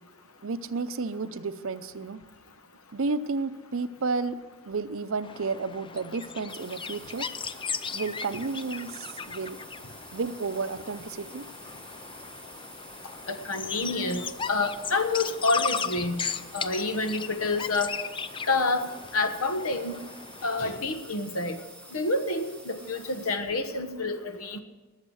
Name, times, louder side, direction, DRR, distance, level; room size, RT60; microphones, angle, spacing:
voice 1, 0.4-2.2 2.9-4.4 4.7-7.2 7.9-9.6 10.1-11.4, right 4 dB, 70° right, 13 dB, 0.6 m, -32 dB
sound 1, 5.2-20.8, left 6 dB, 25° left, 0.4 m, -37 dB
sound 2, 6.5-23.4, right 1 dB, 5° left, 1.8 m, -49 dB
voice 2, 13.3-16.2 16.5-17.9 18.5-18.9 19.1-20.0 20.4-21.6 21.9-24.6, left 3 dB, 85° left, 8 dB, 1.2 m, -28 dB
19.5 x 7.4 x 6.3 m, 1.2 s
head